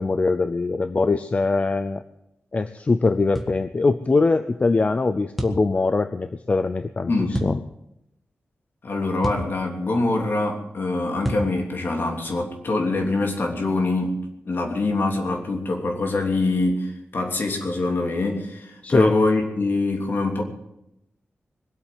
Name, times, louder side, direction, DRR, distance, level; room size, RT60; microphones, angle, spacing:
voice 1, 0.0-2.0 2.5-7.6 18.8-19.1, left 3 dB, 30° left, 11 dB, 0.6 m, -22 dB
sound 1, 3.3-3.6 5.4-5.6 7.3-7.6 9.2-9.5 11.2-11.5, right 1 dB, ahead, 1.6 m, -28 dB
voice 2, 7.1-7.4 8.8-14.2 14.4-20.4, left 2 dB, 55° left, 2 dB, 3.1 m, -24 dB
21.5 x 8.6 x 7.6 m, 0.84 s
wide cardioid pair, 150°, 4 cm